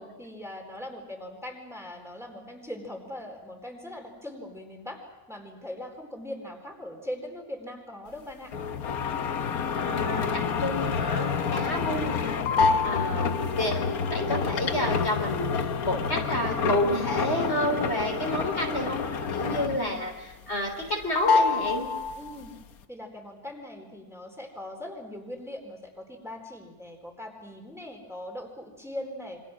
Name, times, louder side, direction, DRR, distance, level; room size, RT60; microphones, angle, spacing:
voice 1, 0.0-5.0 5.3-8.5 19.6-20.1 22.1-22.5 22.9-29.4, left 1 dB, ahead, 1 dB, 4.3 m, -40 dB
sound 1, 8.5-20.0 20.3-20.9 21.1-22.5, left 5 dB, 75° left, 1.6 m, -28 dB
voice 2, 9.8-12.2 12.8-20.1 20.5-21.9, left 1 dB, 45° left, 1 dB, 3.9 m, -30 dB
28.0 x 24.5 x 6.3 m, 1.1 s
omnidirectional pair, 1.5 m